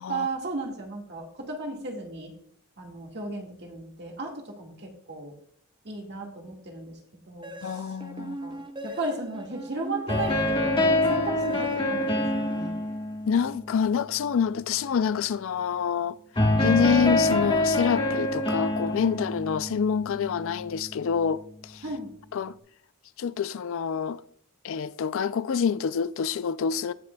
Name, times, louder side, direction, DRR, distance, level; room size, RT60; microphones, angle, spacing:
voice 1, 0.1-2.3 2.8-5.3 5.8-7.0 7.3-12.8 21.8-22.1, right 2 dB, 50° right, 1.7 m, -35 dB
sound 1, 7.4-13.3, right 1 dB, 20° right, 0.6 m, -39 dB
voice 2, 7.6-8.4 13.3-16.2 16.6-21.8 22.3-22.5 23.2-24.2 24.6-26.9, left 6 dB, 60° left, 0.4 m, -27 dB
sound 2, 10.1-14.3 16.4-21.3, left 1 dB, 25° left, 1.4 m, -26 dB
16.5 x 5.9 x 2.3 m
head